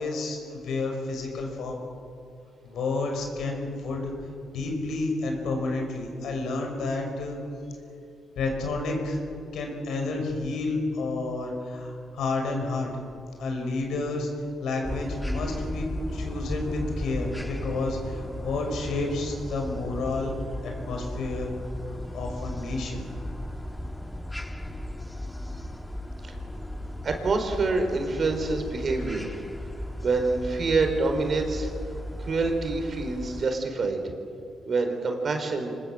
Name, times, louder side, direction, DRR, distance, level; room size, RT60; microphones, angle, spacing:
voice 1, 0.0-1.8 2.6-4.1 4.5-7.4 8.4-9.2 9.5-12.9 13.4-14.3 14.6-20.3 20.6-21.5 22.1-23.0, left 3 dB, 75° left, 2 dB, 6.0 m, -30 dB
sound 1, 14.8-33.5, left 1 dB, 10° left, 1.7 m, -36 dB
voice 2, 27.0-29.4 30.0-31.7 32.2-34.0 34.7-35.7, right 3 dB, 50° right, 5 dB, 4.6 m, -26 dB
25.5 x 20.5 x 7.9 m, 2.4 s
cardioid pair, 70°, 0 cm